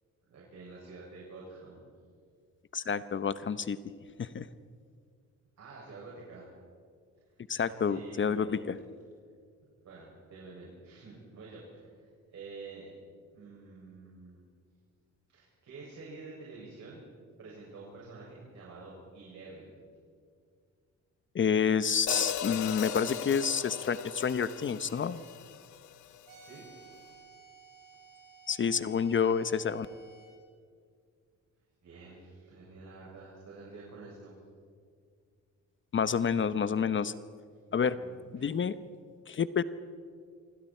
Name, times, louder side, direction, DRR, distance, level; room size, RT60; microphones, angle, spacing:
voice 1, 0.3-1.9 5.6-6.5 7.6-8.6 9.8-11.9 12.3-12.9 13.3-14.4 15.3-17.0 17.4-19.7 26.4-26.7 31.8-34.4 37.7-38.5, right 3 dB, 60° right, -4 dB, 6.9 m, -48 dB
voice 2, 2.7-3.8 4.2-4.5 7.5-8.8 21.3-25.2 28.5-29.9 35.9-37.1 37.7-38.0 38.3-38.8 39.3-39.6, left 6 dB, 40° left, 14 dB, 0.9 m, -29 dB
Hi-hat, 22.1-26.3, left 9 dB, 75° left, 1.2 m, -38 dB
sound 1, 26.2-30.3, right 5 dB, 85° right, 6.0 m, -55 dB
26.0 x 25.0 x 4.5 m, 2.1 s
cardioid pair, 90°, 30 cm